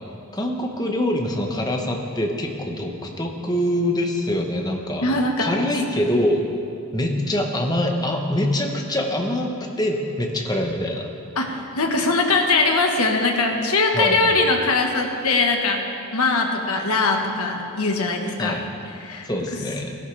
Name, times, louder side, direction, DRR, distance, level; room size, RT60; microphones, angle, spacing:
voice 1, 0.3-5.1 5.4-6.4 6.9-9.5 9.8-11.1 13.9-14.3 18.4-18.6 19.2-20.0, left 1 dB, 15° left, 2 dB, 0.9 m, -24 dB
voice 2, 5.0-5.5 11.4-15.8 16.1-18.6 19.0-19.3, left 3 dB, 85° left, 2 dB, 1.4 m, -21 dB
17.0 x 11.0 x 3.3 m, 2.6 s
head